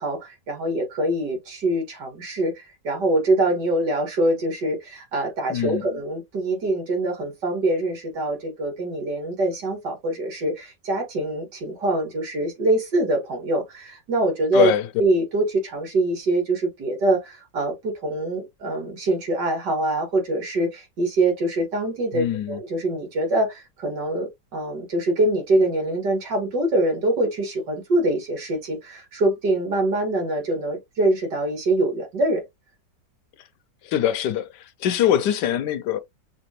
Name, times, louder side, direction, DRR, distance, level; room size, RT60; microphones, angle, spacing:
voice 1, 0.0-14.7 15.0-32.4, right 1 dB, 70° right, 2.7 m, -24 dB
voice 2, 5.5-5.9 14.5-14.9 22.1-22.6 33.8-36.0, left 10 dB, 75° left, 1.2 m, -23 dB
6.0 x 3.0 x 3.0 m
omnidirectional pair, 1.9 m